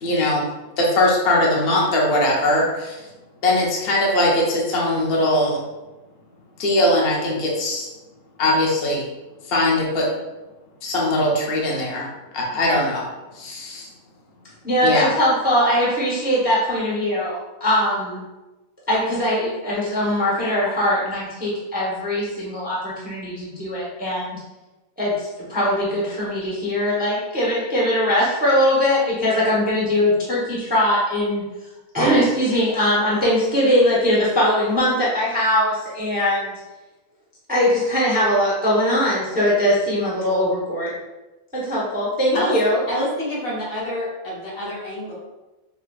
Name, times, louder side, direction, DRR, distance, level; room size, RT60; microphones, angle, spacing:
voice 1, 0.0-0.4 0.8-3.1 3.4-5.6 6.6-7.9 8.4-9.0 9.4-10.1 10.8-12.1 12.3-13.0 13.3-13.9 14.8-15.1, left 1 dB, 50° left, -3 dB, 0.8 m, -20 dB
voice 2, 14.6-18.2 18.9-24.4 25.0-31.4 31.9-36.6 37.5-40.9 41.5-42.8, left 1 dB, 10° right, -6 dB, 0.5 m, -21 dB
voice 3, 42.9-45.1, equal, 80° left, -7 dB, 1.9 m, -27 dB
4.8 x 2.1 x 2.3 m, 1.1 s
omnidirectional pair, 1.4 m